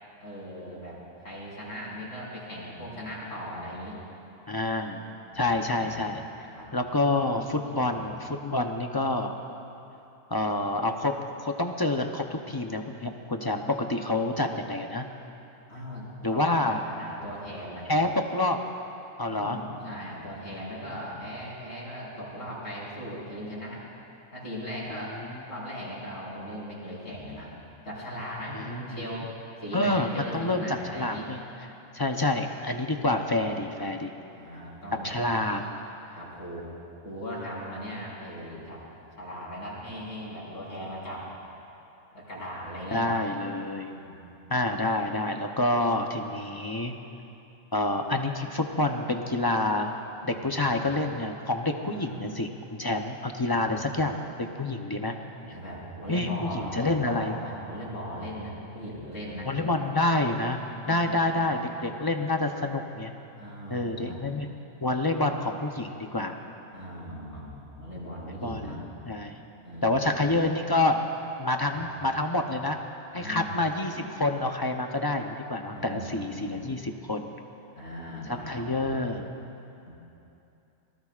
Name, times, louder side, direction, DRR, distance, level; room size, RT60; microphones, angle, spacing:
voice 1, 0.2-4.0 5.3-6.0 6.5-6.7 7.5-7.9 15.7-17.9 19.3-23.8 24.3-25.1 25.5-27.5 27.8-29.3 29.6-31.3 34.3-35.2 36.1-36.7 37.0-38.8 39.2-41.3 42.1-43.1 43.9-44.2 50.3-50.8 51.9-52.3 53.5-54.0 55.4-59.5 60.8-61.7 63.4-64.2 66.7-68.8 69.6-70.3 71.6-71.9 73.1-73.7 75.7-76.6 77.7-79.0 79.8-79.9, equal, 80° left, -7 dB, 5.0 m, -39 dB
voice 2, 4.5-5.0 5.3-6.2 6.7-9.4 10.3-11.1 11.4-15.0 16.2-16.8 17.9-18.6 19.2-19.6 24.9-25.4 28.5-29.0 29.7-31.4 31.9-34.1 35.0-35.7 42.9-43.9 44.5-46.9 47.7-49.9 50.2-55.1 56.1-57.3 59.5-60.6 60.9-63.1 63.7-64.5 64.8-66.3 68.4-68.8 69.1-69.3 69.8-71.0 71.4-72.8 73.1-77.3 78.5-79.3, left 2 dB, 25° left, 4 dB, 0.5 m, -28 dB
25.5 x 19.0 x 2.5 m, 2.8 s
omnidirectional pair, 1.3 m